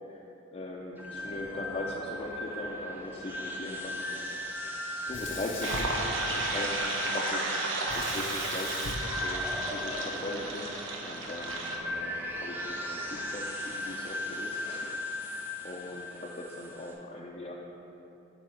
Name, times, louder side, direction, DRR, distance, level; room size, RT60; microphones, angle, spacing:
voice 1, 0.5-4.7 5.0-7.6 7.9-10.7 11.0-15.3 15.6-17.5, left 2 dB, 35° left, -3 dB, 0.5 m, -40 dB
sound 1, 1.0-16.9, left 1 dB, 10° right, 0.7 m, -37 dB
Sink (filling or washing), 5.1-6.7 7.9-10.1, left 2 dB, 80° left, 0.8 m, -40 dB
sound 2, 5.6-11.8, right 3 dB, 90° right, 0.9 m, -33 dB
8.3 x 3.4 x 6.3 m, 2.9 s
head